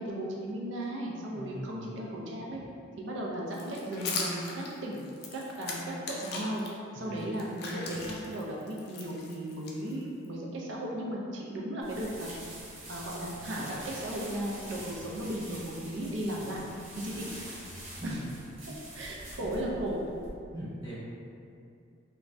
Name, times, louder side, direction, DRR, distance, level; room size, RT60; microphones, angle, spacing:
voice 1, 0.0-2.6 3.0-5.0 5.3-5.8 6.1-6.6 6.9-12.3 12.9-16.6 16.9-17.3 18.0-18.2 18.9-20.0, right 1 dB, 65° right, -3 dB, 0.4 m, -36 dB
voice 2, 1.3-1.8 6.9-7.2 18.0-18.3 19.4-19.5 20.5-20.9, right 1 dB, 25° right, -14 dB, 0.8 m, -40 dB
sound 1, 3.5-6.7 7.2-10.3, left 3 dB, 50° left, 0.3 m, -39 dB
sound 2, 11.8-20.3, right 1 dB, 85° right, 1.1 m, -45 dB
3.1 x 2.3 x 2.5 m, 2.5 s
head